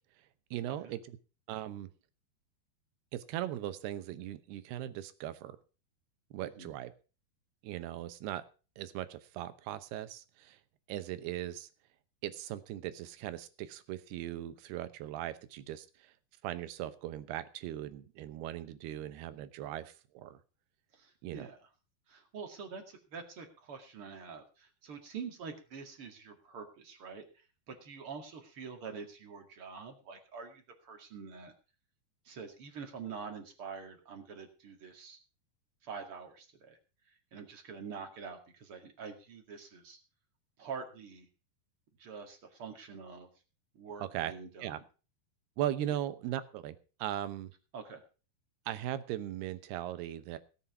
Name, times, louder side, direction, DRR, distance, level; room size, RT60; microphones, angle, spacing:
voice 1, 0.5-1.2 1.5-1.9 3.1-5.6 6.3-6.9 7.6-8.4 8.8-10.6 10.9-11.7 12.2-16.1 16.4-20.4 21.2-21.5 44.0-44.3 44.6-44.8 45.6-47.5 48.7-50.4, right 12 dB, 80° right, 12 dB, 3.0 m, -39 dB
voice 2, 20.9-21.6 22.1-31.5 32.2-35.2 35.8-36.8 37.3-40.0 40.6-41.3 42.0-43.3 43.7-44.7 47.7-48.0, right 5 dB, 40° right, 5 dB, 2.5 m, -46 dB
17.5 x 7.5 x 5.8 m, 0.35 s
omnidirectional pair, 4.6 m